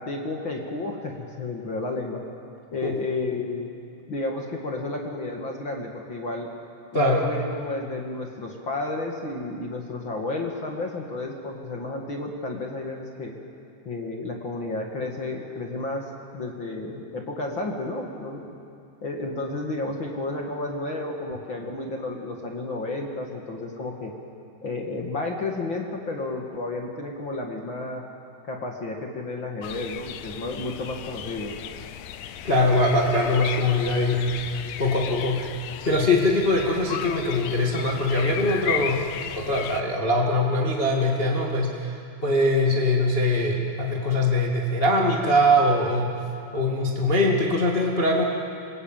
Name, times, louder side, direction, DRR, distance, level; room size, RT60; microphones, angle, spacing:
voice 1, 0.0-2.2 2.7-3.7 4.1-6.5 6.9-13.3 13.8-16.0 16.3-18.5 19.0-24.1 24.6-28.0 28.5-31.6, left 2 dB, 45° left, 0 dB, 1.6 m, -31 dB
voice 2, 6.9-7.2 32.4-35.5 35.8-39.0 39.3-41.9 42.2-46.1 46.5-48.2, left 1 dB, 25° left, -2 dB, 1.2 m, -22 dB
sound 1, 29.6-39.8, left 10 dB, 85° left, 2.0 m, -35 dB
26.5 x 22.0 x 9.0 m, 2.5 s
omnidirectional pair, 5.2 m